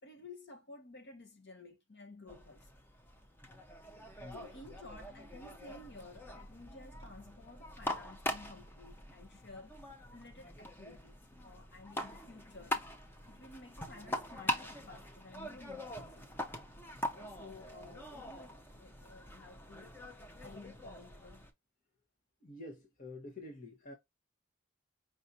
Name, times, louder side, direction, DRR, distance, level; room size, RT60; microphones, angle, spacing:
voice 1, 0.0-2.7 4.3-9.8 10.1-12.9 13.3-16.3 17.1-19.9 20.4-21.5, left 2 dB, 60° left, 1.5 m, -53 dB
sound 1, 2.3-21.5, left 1 dB, 10° left, 0.8 m, -43 dB
voice 2, 4.2-4.5 22.4-23.9, left 2 dB, 45° left, 1.3 m, -48 dB
5.4 x 2.8 x 2.5 m
head